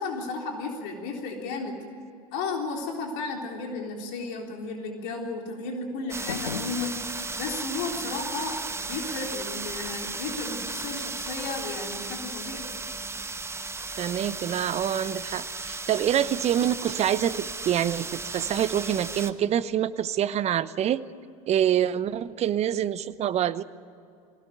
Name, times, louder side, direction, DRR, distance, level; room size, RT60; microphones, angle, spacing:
voice 1, 0.0-1.8 2.3-7.0 7.4-12.6, left 3 dB, 60° left, 1 dB, 3.8 m, -33 dB
sound 1, 6.1-7.5, left 7 dB, 85° left, 1.3 m, -38 dB
sound 2, 6.1-19.3, right 3 dB, 15° right, 1.2 m, -35 dB
voice 2, 14.0-21.0 21.5-23.6, right 10 dB, 35° right, 15 dB, 0.8 m, -26 dB
21.5 x 17.5 x 9.1 m, 2.6 s
hypercardioid pair, 80°, 19 cm